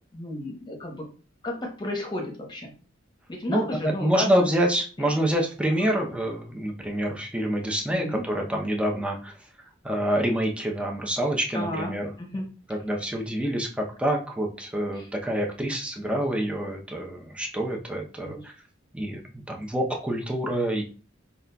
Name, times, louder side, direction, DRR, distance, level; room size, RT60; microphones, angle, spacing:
voice 1, 0.1-1.0 1.4-2.7 3.3-4.3 5.0-5.2 7.9-8.2 11.5-12.5 18.2-18.4, left 1 dB, 25° left, 1 dB, 0.9 m, -33 dB
voice 2, 3.5-9.3 9.8-12.1 12.7-18.5 18.9-20.8, right 1 dB, 5° right, 1 dB, 0.6 m, -27 dB
5.3 x 2.4 x 2.2 m, 0.37 s
head